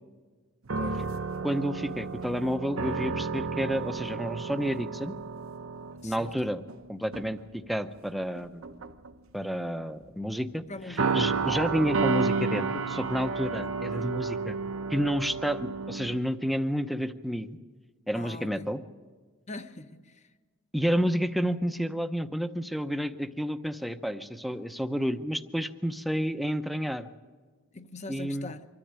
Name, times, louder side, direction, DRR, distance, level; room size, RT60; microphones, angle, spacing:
sound 1, 0.7-6.8 7.1-7.4 8.4-9.1 11.0-16.2, right 4 dB, 75° right, 0.9 m, -31 dB
voice 1, 1.4-5.1 6.0-6.6 6.9-8.6 9.3-14.6 14.9-17.6 18.1-18.8 20.7-27.1 28.1-28.5, equal, ahead, 0.7 m, -30 dB
voice 2, 6.0-6.5 10.7-11.2 13.6-14.1 18.1-18.7 19.5-20.2 27.7-28.7, left 2 dB, 35° left, 0.9 m, -43 dB
24.5 x 13.5 x 8.9 m
head